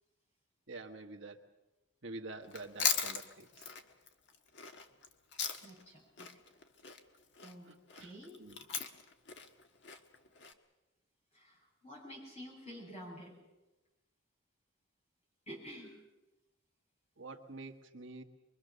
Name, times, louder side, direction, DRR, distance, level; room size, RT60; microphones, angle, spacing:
voice 1, 0.7-1.4 2.0-3.7 7.7-8.1 8.4-8.6 17.2-18.2, right 3 dB, 60° right, 4 dB, 1.5 m, -47 dB
Chewing mastication, 2.4-5.9 6.2-10.5, left 6 dB, 55° left, 1.5 m, -38 dB
voice 2, 5.6-6.3 7.4-8.4 11.3-13.4 15.5-16.0, equal, 30° left, -1 dB, 7.6 m, -50 dB
24.0 x 22.0 x 6.7 m, 1.1 s
head